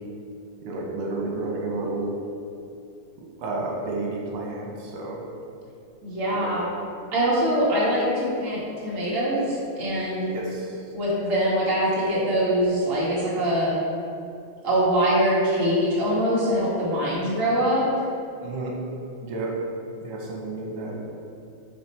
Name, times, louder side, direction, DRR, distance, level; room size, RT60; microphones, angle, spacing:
voice 1, 0.7-2.1 3.4-5.2 6.4-6.5 10.3-10.6 18.4-18.8 19.2-19.5 20.0-21.0, right 2 dB, 85° right, -2 dB, 1.8 m, -31 dB
voice 2, 6.0-6.7 7.1-10.3 10.9-13.8 14.6-18.1, equal, 40° right, -7 dB, 1.8 m, -23 dB
8.7 x 3.0 x 4.3 m, 2.5 s
omnidirectional pair, 2.4 m